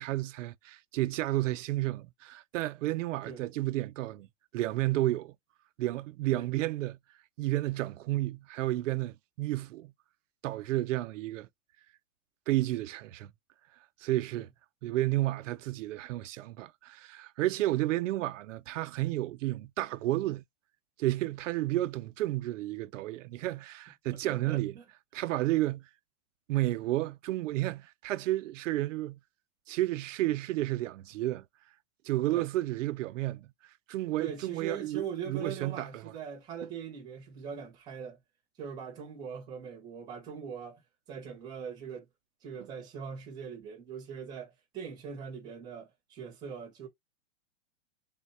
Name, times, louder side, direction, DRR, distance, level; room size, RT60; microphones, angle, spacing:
voice 1, 0.0-4.3 4.5-5.3 5.8-7.0 7.4-9.9 10.4-11.5 12.5-13.3 14.0-14.5 14.8-20.4 21.0-24.7 25.1-25.9 26.5-29.2 29.7-31.4 32.0-33.5 33.9-36.0, right 16 dB, 85° right, 0.5 m, -31 dB
voice 2, 24.2-24.8 32.3-32.5 34.2-38.2 38.6-40.8 41.1-42.1 42.4-46.9, right 7 dB, 10° right, 0.7 m, -41 dB
3.6 x 2.2 x 4.1 m
supercardioid pair, 175°, 37 cm